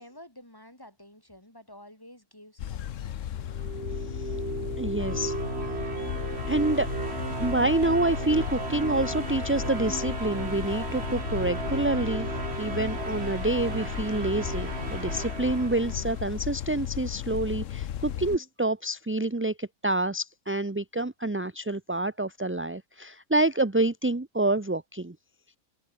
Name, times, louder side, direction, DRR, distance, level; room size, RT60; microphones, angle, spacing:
voice 1, 0.0-3.2, left 1 dB, 15° left, 4.8 m, -50 dB
sound 1, 2.6-18.4, left 10 dB, 60° left, 1.1 m, -35 dB
sound 2, 3.4-16.5, right 3 dB, 45° right, 2.8 m, -35 dB
voice 2, 4.8-5.4 6.5-6.9 7.4-12.3 12.6-25.2, right 2 dB, 10° right, 0.6 m, -27 dB
omnidirectional pair, 1.6 m